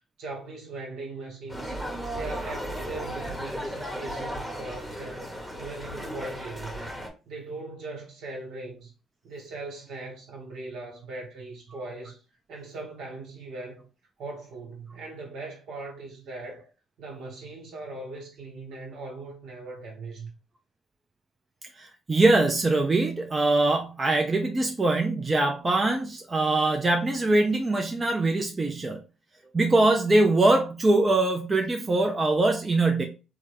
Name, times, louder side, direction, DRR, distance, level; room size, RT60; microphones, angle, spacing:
voice 1, 0.2-1.8 2.1-5.2 5.5-6.9 7.3-8.9 9.2-12.2 12.5-13.9 14.2-16.7 17.0-20.3, right 3 dB, 70° right, 1.3 m, -39 dB
sound 1, 1.5-7.1, equal, ahead, 1.0 m, -35 dB
voice 2, 21.7-29.0 29.5-33.0, right 2 dB, 30° right, 0.6 m, -23 dB
3.5 x 2.2 x 3.3 m
hypercardioid pair, 50°, 0 cm